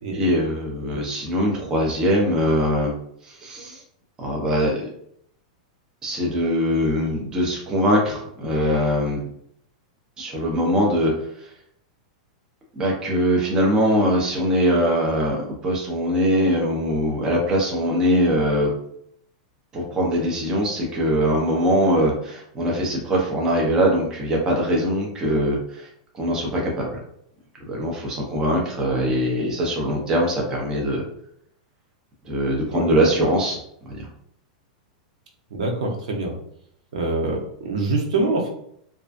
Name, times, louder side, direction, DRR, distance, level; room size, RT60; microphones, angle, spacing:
voice 1, 0.1-2.9 3.2-3.8 4.2-4.9 6.0-9.3 10.2-11.1 12.7-18.7 19.7-25.9 26.1-27.0 27.7-31.0 32.2-33.6 33.9-34.1, equal, 20° right, -1 dB, 0.6 m, -22 dB
voice 2, 35.5-36.4 36.9-38.5, right 2 dB, 75° right, 0 dB, 0.7 m, -25 dB
2.4 x 2.2 x 2.4 m, 0.68 s
supercardioid pair, 150°, 4 cm